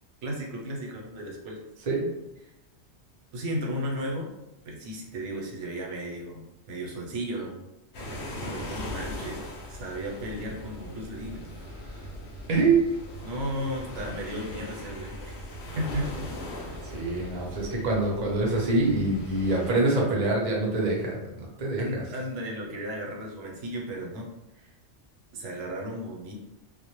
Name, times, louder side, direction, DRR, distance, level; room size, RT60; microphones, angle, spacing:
voice 1, 0.2-1.6 3.3-4.3 4.6-7.6 8.5-9.4 9.7-11.5 13.2-15.5 15.8-16.3 17.1-17.3 21.8-24.3 24.6-24.7 25.3-26.4, equal, 90° right, -1 dB, 0.9 m, -34 dB
sound 1, 7.9-19.7, equal, 70° left, 0.8 m, -39 dB
voice 2, 12.5-12.8 16.9-21.3 21.6-22.0, right 3 dB, 45° right, -3 dB, 0.6 m, -25 dB
2.0 x 2.0 x 2.9 m, 0.93 s
omnidirectional pair, 1.2 m